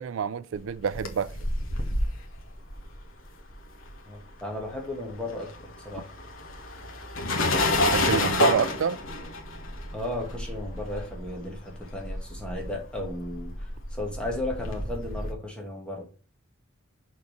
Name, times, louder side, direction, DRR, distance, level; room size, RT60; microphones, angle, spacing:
voice 1, 0.0-1.4 7.8-9.0, right 7 dB, 85° right, 0.4 m, -28 dB
sound 1, 0.7-4.3 4.6-15.3, left 1 dB, 85° left, 1.4 m, -30 dB
voice 2, 4.1-6.1 9.9-16.0, left 1 dB, 5° left, 2.1 m, -35 dB
6.5 x 4.0 x 5.1 m
head